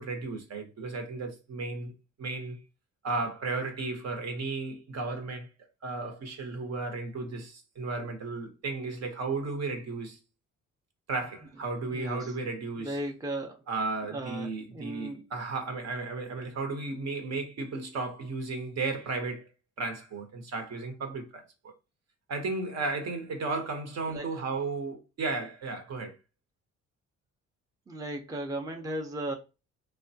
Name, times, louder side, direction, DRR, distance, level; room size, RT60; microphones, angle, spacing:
voice 1, 0.0-1.9 2.2-2.6 3.0-5.5 5.8-10.2 11.1-13.0 13.7-19.5 19.8-21.7 22.3-26.1, right 3 dB, 60° right, 0.9 m, -34 dB
voice 2, 11.9-12.3 12.8-13.6 14.0-15.3 24.1-24.4 27.9-29.3, right 1 dB, 10° right, 0.6 m, -36 dB
3.4 x 2.2 x 2.7 m
cardioid pair, 90°, 30 cm